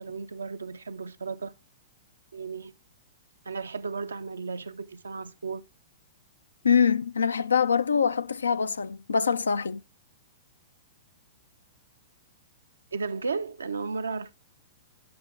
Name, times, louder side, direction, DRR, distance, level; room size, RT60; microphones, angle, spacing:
voice 1, 0.0-1.5 2.3-2.7 3.5-5.6 12.9-14.3, right 4 dB, 80° right, 0.6 m, -34 dB
voice 2, 6.6-9.8, left 6 dB, 80° left, 0.4 m, -24 dB
8.7 x 8.7 x 3.2 m
figure-of-eight pair, 110°, 0 cm